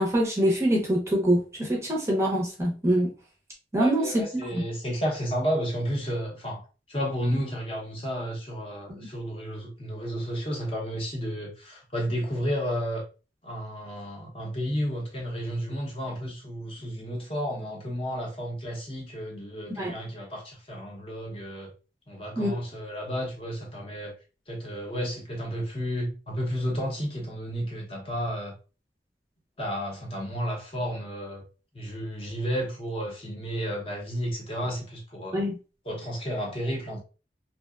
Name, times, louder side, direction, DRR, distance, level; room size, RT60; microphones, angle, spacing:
voice 1, 0.0-3.1 3.7-4.3 4.5-4.6 8.9-9.1 19.8-19.9 22.4-22.6 35.3-35.6, right 1 dB, 15° right, 0.5 m, -24 dB
voice 2, 3.8-13.0 13.4-21.7 22.1-24.1 24.5-28.5 29.6-31.4 31.7-35.4 35.9-37.0, equal, 30° left, 0.6 m, -32 dB
2.7 x 2.0 x 2.3 m
head